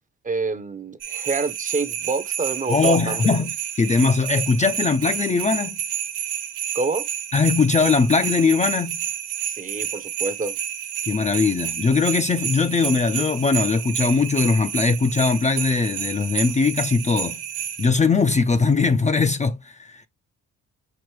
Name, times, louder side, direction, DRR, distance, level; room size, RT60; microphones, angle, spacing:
voice 1, 0.2-3.2 6.7-7.1 9.5-10.6, right 4 dB, 25° right, 0.7 m, -27 dB
sound 1, 1.0-17.9, right 9 dB, 85° right, 1.0 m, -30 dB
voice 2, 2.7-5.8 7.3-9.0 11.0-17.4 17.8-20.1, left 4 dB, 25° left, 0.4 m, -20 dB
6.0 x 2.5 x 3.1 m
cardioid pair, 90°, 30 cm